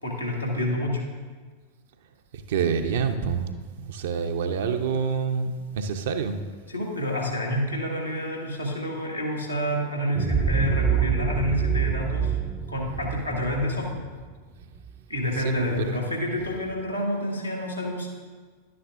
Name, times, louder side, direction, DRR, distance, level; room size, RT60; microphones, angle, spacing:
voice 1, 0.0-1.0 6.7-12.3 12.7-14.0 15.1-18.1, left 1 dB, 90° left, -2 dB, 1.8 m, -28 dB
voice 2, 2.3-6.4 15.4-16.0, right 6 dB, 55° right, 7 dB, 0.6 m, -27 dB
sound 1, 10.2-14.9, right 7 dB, 15° right, 0.5 m, -26 dB
11.5 x 9.5 x 2.5 m, 1.5 s
figure-of-eight pair, 90°, 0 cm